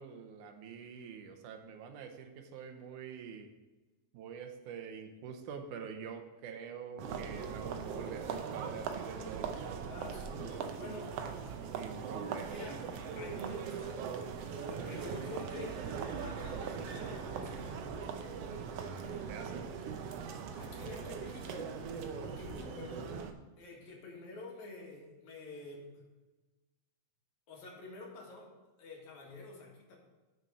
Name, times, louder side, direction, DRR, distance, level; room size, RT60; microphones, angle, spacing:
voice 1, 0.0-3.5 4.1-10.0 10.9-11.0 11.7-12.7 19.3-19.7, right 6 dB, 90° right, 4 dB, 2.4 m, -46 dB
sound 1, 7.0-23.3, right 6 dB, 70° right, 1.5 m, -40 dB
voice 2, 9.8-11.2 12.5-12.9 13.2-14.4 14.9-18.0 20.5-21.8 22.2-23.1 23.6-26.0 27.5-28.5 28.8-30.0, left 3 dB, 70° left, -1 dB, 3.0 m, -48 dB
sound 2, 13.3-20.0 25.6-25.7, right 3 dB, 55° right, 2.3 m, -62 dB
7.0 x 6.6 x 6.2 m, 1.2 s
omnidirectional pair, 3.5 m